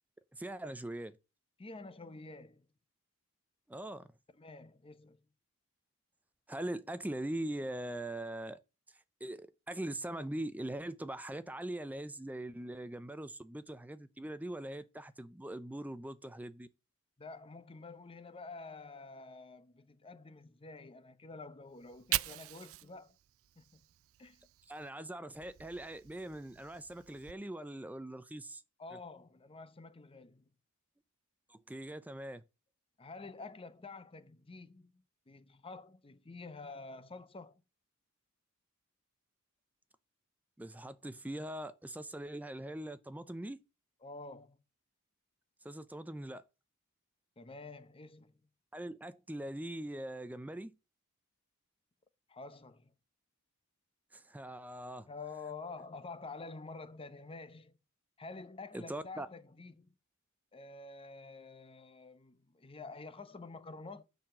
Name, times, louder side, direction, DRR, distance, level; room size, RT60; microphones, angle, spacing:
voice 1, 0.3-1.2 3.7-4.1 6.5-8.6 9.2-16.7 24.7-28.6 28.9-29.0 31.5-32.4 40.6-43.6 45.6-46.4 48.7-50.7 54.1-55.1 58.7-59.3, right 1 dB, 5° right, 0.5 m, -42 dB
voice 2, 1.6-2.7 4.4-5.2 17.2-23.2 23.6-23.8 24.2-24.4 28.8-30.5 33.0-37.6 44.0-44.6 47.4-48.4 52.3-52.9 55.1-57.8 58.2-59.9 60.5-64.0, left 3 dB, 25° left, 0.8 m, -49 dB
Fire, 21.7-24.9 25.3-27.3, right 16 dB, 65° right, 0.4 m, -42 dB
6.9 x 5.8 x 7.5 m
head